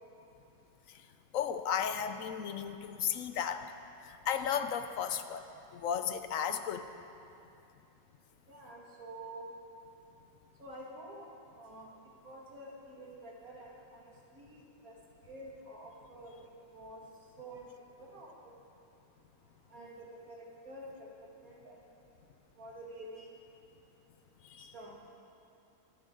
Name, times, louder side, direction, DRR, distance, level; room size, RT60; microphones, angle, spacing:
voice 1, 1.3-3.7 4.0-5.5 5.7-6.9 24.4-24.7, left 8 dB, 75° left, 9 dB, 1.0 m, -34 dB
voice 2, 8.5-9.5 10.6-11.3 11.5-11.9 12.2-15.0 15.2-16.4 16.7-17.0 17.4-17.7 18.0-18.5 19.7-21.8 22.6-23.3 24.6-25.0, right 1 dB, 80° right, -3 dB, 2.6 m, -49 dB
24.0 x 10.0 x 3.9 m, 2.7 s
omnidirectional pair, 1.5 m